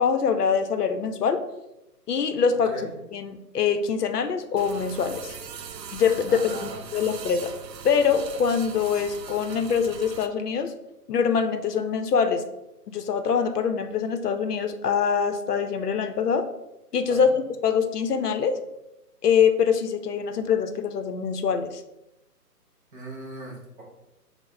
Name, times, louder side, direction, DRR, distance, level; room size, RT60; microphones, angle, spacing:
voice 1, 0.0-1.4 2.1-2.7 3.1-5.4 5.9-7.5 7.8-10.7 11.1-12.4 12.9-16.5 16.9-17.3 17.6-18.5 19.2-21.8, left 6 dB, 70° left, 9 dB, 0.6 m, -24 dB
sound 1, 4.6-10.3, right 7 dB, 90° right, 0.6 m, -40 dB
voice 2, 6.3-7.0 17.1-17.4 22.9-23.8, right 1 dB, 30° right, -1 dB, 1.1 m, -39 dB
6.0 x 2.0 x 3.6 m, 0.92 s
figure-of-eight pair, 150°, 49 cm